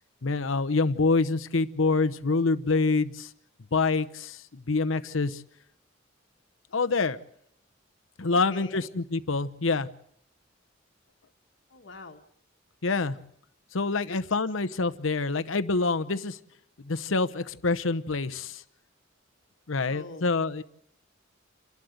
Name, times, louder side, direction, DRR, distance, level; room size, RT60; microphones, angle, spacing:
voice 1, 0.2-3.3 3.7-5.4 6.7-7.2 8.2-9.9 12.8-13.2 13.7-16.4 16.8-18.6 19.7-20.6, left 3 dB, 85° left, 11 dB, 0.9 m, -26 dB
voice 2, 8.3-8.9 11.7-12.2 14.0-14.2 19.9-20.3, left 3 dB, 70° left, 3 dB, 1.4 m, -44 dB
28.5 x 12.0 x 7.9 m, 0.73 s
head